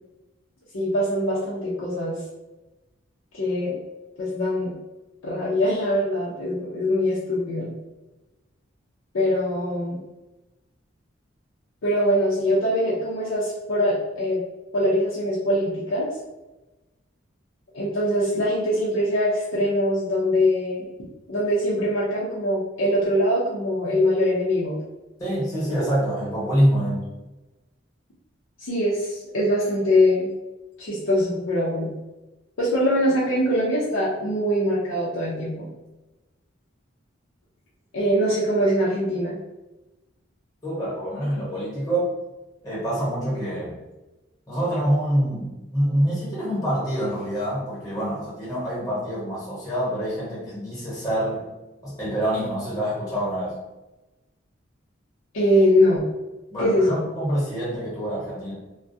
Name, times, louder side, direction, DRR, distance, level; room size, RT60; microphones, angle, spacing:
voice 1, 0.7-2.2 3.3-3.8 4.2-4.7 5.2-7.7 9.1-10.0 11.8-14.4 14.7-16.1 17.7-20.9 21.3-24.8 28.6-30.3 30.8-32.0 32.6-35.7 37.9-39.4 55.3-56.1 56.6-57.0, equal, 90° left, -8 dB, 0.6 m, -22 dB
voice 2, 25.2-27.1 40.6-42.1 42.6-43.8 44.5-51.5 51.8-53.6 56.5-58.5, equal, 15° left, -7 dB, 0.9 m, -26 dB
2.3 x 2.1 x 2.6 m, 1.1 s
head